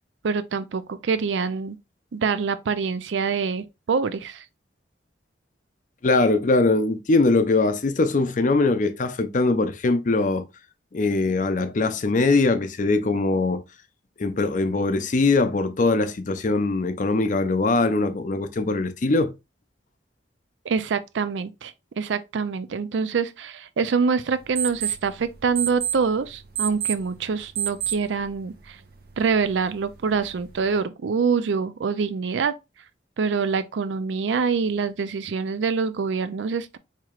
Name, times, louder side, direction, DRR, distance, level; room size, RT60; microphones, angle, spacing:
voice 1, 0.2-1.8 2.1-4.4 20.7-28.8 29.2-32.5 33.2-36.8, right 5 dB, 80° right, 0.4 m, -25 dB
voice 2, 6.0-10.4 10.9-13.6 14.2-19.3, left 3 dB, 45° left, 0.5 m, -21 dB
sound 1, 24.3-30.8, right 10 dB, 55° right, 0.8 m, -33 dB
4.6 x 2.9 x 2.4 m
head